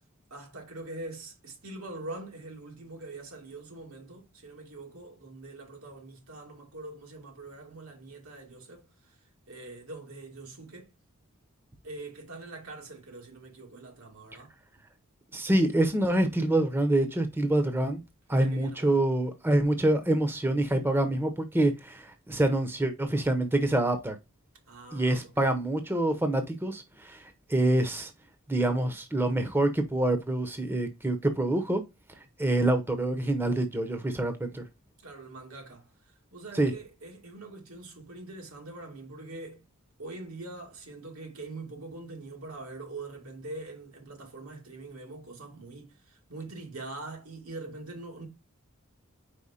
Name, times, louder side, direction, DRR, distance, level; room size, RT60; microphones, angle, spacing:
voice 1, 0.3-9.2 9.5-10.9 11.8-14.5 18.3-19.0 24.7-25.5 35.0-35.9 36.3-39.7 40.0-48.3, right 2 dB, 85° right, 2.2 m, -43 dB
voice 2, 15.3-18.0 18.3-24.2 24.9-27.2 27.5-28.1 28.5-31.8 32.4-34.6 36.5-36.7, right 1 dB, 10° right, 0.8 m, -26 dB
4.9 x 4.5 x 4.2 m
head